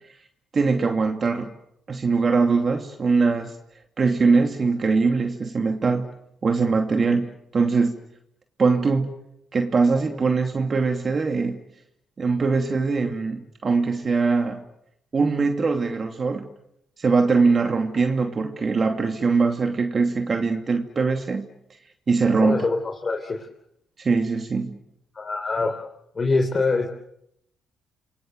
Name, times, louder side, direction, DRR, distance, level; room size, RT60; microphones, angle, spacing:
voice 1, 0.5-1.5 1.9-3.5 4.0-6.0 6.4-8.0 8.6-9.1 9.5-11.6 12.2-14.6 15.1-16.5 17.0-21.5 22.1-22.7 24.0-24.8, right 4 dB, 40° right, 4 dB, 2.7 m, -22 dB
voice 2, 22.4-23.5 25.1-25.8 26.2-26.9, left 3 dB, 35° left, 3 dB, 3.9 m, -24 dB
28.0 x 23.0 x 8.0 m, 0.79 s
cardioid pair, 90°, 0 cm